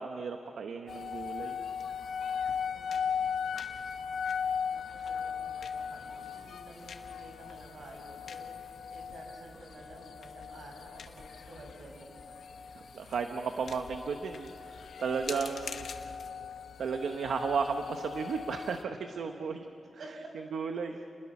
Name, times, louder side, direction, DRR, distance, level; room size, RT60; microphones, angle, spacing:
voice 1, 0.0-1.6 12.7-14.5 15.0-15.9 16.8-19.6 20.3-21.0, right 5 dB, 80° right, 6 dB, 1.0 m, -34 dB
sound 1, 0.9-18.8, left 7 dB, 70° left, 1.1 m, -38 dB
voice 2, 2.7-3.2 3.4-4.1 4.6-5.6 5.9-12.1 20.0-20.1 20.9-21.0, right 1 dB, 65° right, 1 dB, 5.7 m, -51 dB
29.5 x 20.0 x 6.0 m, 2.8 s
wide cardioid pair, 125°, 0 cm